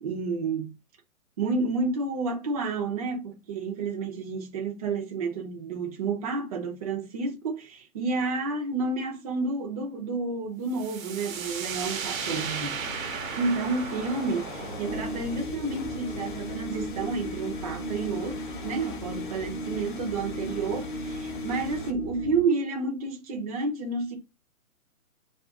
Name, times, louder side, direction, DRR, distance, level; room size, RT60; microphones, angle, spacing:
voice 1, 0.0-0.7 1.4-12.8 13.3-24.2, right 3 dB, 25° right, 0.6 m, -30 dB
sound 1, 10.7-18.3, right 6 dB, 65° right, 0.8 m, -37 dB
sound 2, 12.2-21.9, left 5 dB, 35° left, 0.5 m, -43 dB
sound 3, 14.8-22.4, equal, 10° left, 0.8 m, -36 dB
2.4 x 2.4 x 3.5 m
hypercardioid pair, 150°, 43 cm